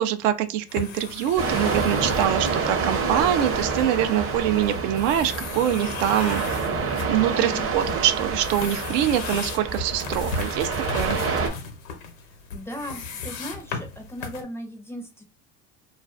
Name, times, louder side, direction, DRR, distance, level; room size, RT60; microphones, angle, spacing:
voice 1, 0.0-6.6 7.1-11.2, right 11 dB, 80° right, 0.5 m, -24 dB
sound 1, 0.7-14.4, left 5 dB, 90° left, 0.8 m, -37 dB
sound 2, 1.4-11.5, right 4 dB, 35° right, 0.6 m, -27 dB
voice 2, 12.5-15.2, equal, 5° left, 0.4 m, -37 dB
2.4 x 2.3 x 2.4 m
supercardioid pair, 90°, 38 cm